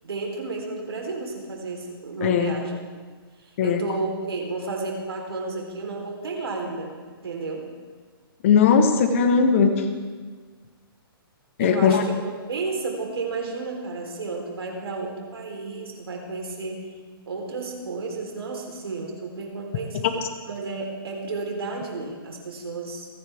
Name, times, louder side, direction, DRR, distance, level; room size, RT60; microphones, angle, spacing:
voice 1, 0.0-2.8 3.6-6.9 7.2-7.7 11.6-16.9 17.3-20.0 20.5-23.1, right 3 dB, 85° right, 1 dB, 3.9 m, -32 dB
voice 2, 2.2-2.5 3.6-3.8 8.4-9.8 11.6-12.0, left 6 dB, 35° left, 7 dB, 1.2 m, -18 dB
28.0 x 10.0 x 3.6 m, 1.5 s
hypercardioid pair, 165°, 13 cm